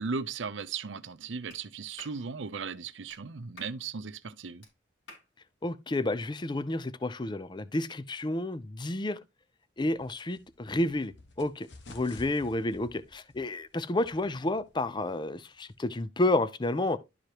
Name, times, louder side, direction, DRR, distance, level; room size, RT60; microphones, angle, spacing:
voice 1, 0.0-4.6, right 5 dB, 80° right, 0.7 m, -37 dB
Clapping, 1.5-1.6 2.0-2.2 3.1-3.2 3.6-3.8 4.6-4.7 5.1-5.3, left 2 dB, 85° left, 4.3 m, -50 dB
voice 2, 5.6-9.2 9.8-17.0, left 2 dB, 25° left, 0.5 m, -30 dB
sound 1, 10.0-15.9, left 2 dB, 70° left, 1.4 m, -53 dB
11.5 x 4.8 x 2.9 m
head